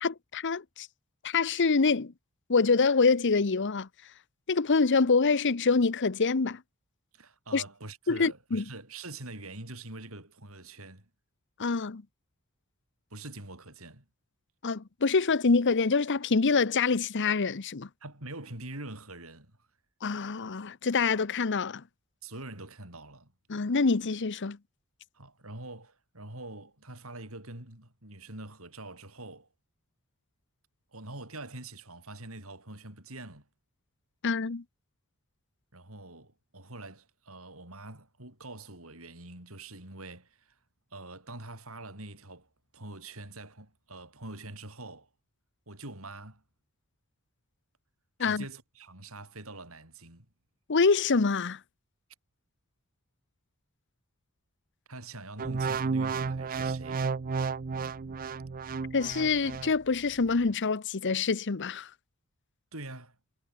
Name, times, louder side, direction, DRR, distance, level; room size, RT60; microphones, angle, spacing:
voice 1, 0.0-0.9 1.2-2.1 2.5-3.9 4.5-6.6 7.5-7.6 8.1-8.6 11.6-12.0 14.6-17.9 20.0-21.8 23.5-24.6 34.2-34.6 48.2-48.4 50.7-51.6 58.9-61.9, left 4 dB, 55° left, 0.8 m, -26 dB
voice 2, 7.1-11.1 13.1-14.0 18.0-19.7 22.2-23.3 25.1-29.5 30.9-33.5 35.7-40.6 40.9-45.1 45.7-46.4 48.2-50.3 54.9-57.1 62.7-63.2, right 2 dB, 70° right, 7.5 m, -44 dB
sound 1, 55.4-59.7 60.3-60.5, right 5 dB, 40° right, 0.5 m, -32 dB
head